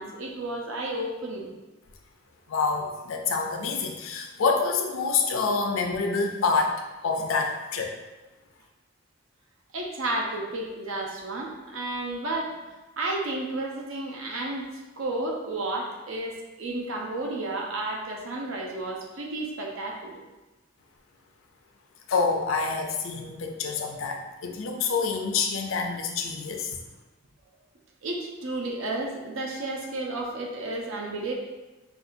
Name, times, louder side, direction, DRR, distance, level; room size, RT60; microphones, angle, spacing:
voice 1, 0.0-1.5 9.7-12.6 13.0-14.7 15.0-20.2 28.0-31.3, right 2 dB, 75° right, 0 dB, 0.7 m, -32 dB
voice 2, 2.5-7.9 22.1-26.8, left 4 dB, 75° left, 3 dB, 0.5 m, -27 dB
5.3 x 2.4 x 2.6 m, 1.1 s
head